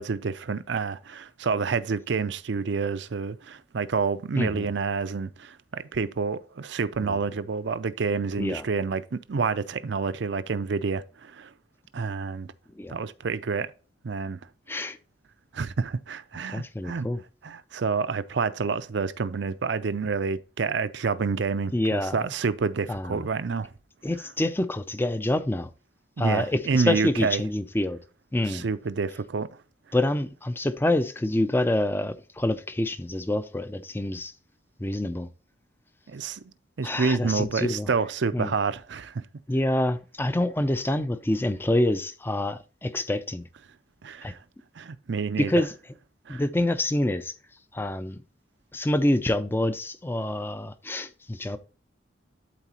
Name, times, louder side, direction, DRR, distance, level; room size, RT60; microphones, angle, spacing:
voice 1, 0.0-11.5 11.9-12.5 12.9-13.7 14.0-14.4 15.5-17.1 17.4-23.7 26.2-27.4 28.4-29.5 36.1-36.4 36.8-39.2 44.0-44.4 44.8-45.5 46.3-46.4, right 5 dB, 65° right, 0.5 m, -28 dB
voice 2, 4.4-4.7 7.0-7.2 8.4-8.6 12.8-13.0 14.7-15.0 16.5-17.2 21.7-22.2 22.9-23.2 24.0-25.7 26.2-28.0 28.3-28.7 29.9-34.3 34.8-35.3 36.8-37.9 38.3-38.5 39.5-43.4 44.2-44.3 45.4-45.7 46.3-47.3 47.7-48.2 48.7-51.6, left 1 dB, 10° left, 0.4 m, -26 dB
12.0 x 4.1 x 2.9 m
head